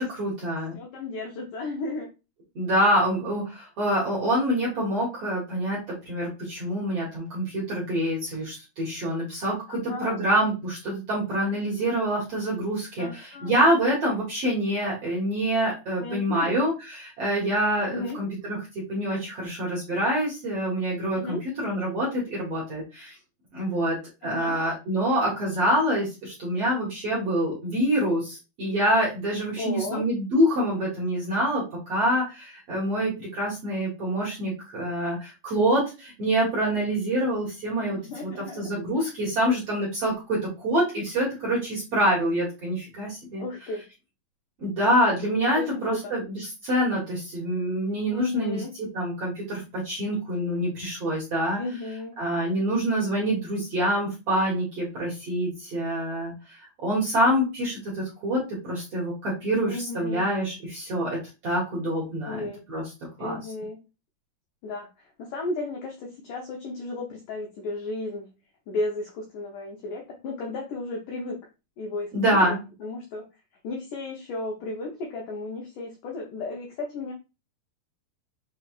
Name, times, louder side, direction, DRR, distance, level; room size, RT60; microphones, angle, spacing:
voice 1, 0.0-0.7 2.5-23.1 23.5-24.0 24.2-43.4 44.6-48.6 48.9-51.6 52.2-62.4 62.7-62.8 63.2-63.4 72.1-72.6, equal, 55° right, -4 dB, 1.7 m, -26 dB
voice 2, 0.7-2.1 9.7-10.2 13.0-13.5 16.0-16.6 17.9-18.2 21.1-21.4 24.2-24.6 29.6-30.0 37.8-38.7 43.4-43.8 45.5-46.1 48.1-48.7 51.6-52.1 59.7-60.3 62.2-62.6 63.2-63.8 64.6-68.3 68.7-71.4 71.8-72.5 72.8-73.2 73.6-77.1, left 2 dB, 90° left, 0 dB, 1.8 m, -34 dB
6.7 x 3.3 x 2.4 m, 0.28 s
omnidirectional pair, 5.0 m